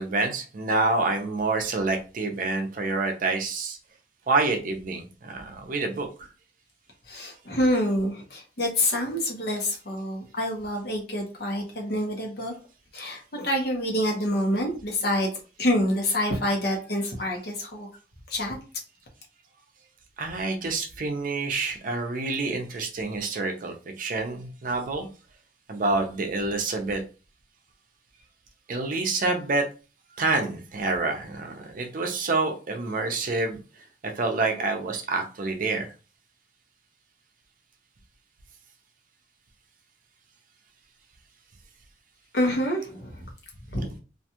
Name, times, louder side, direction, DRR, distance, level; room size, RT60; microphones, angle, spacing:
voice 1, 0.0-3.8 4.3-6.3 20.2-25.1 25.7-27.0 28.7-29.7 30.2-33.6 34.0-35.9, right 3 dB, 50° right, 4 dB, 0.5 m, -27 dB
voice 2, 7.1-12.5 12.9-15.3 15.6-17.9 18.3-18.6 42.3-43.3 43.7-43.9, left 1 dB, 60° left, 0 dB, 0.9 m, -27 dB
2.5 x 2.3 x 2.8 m, 0.34 s
head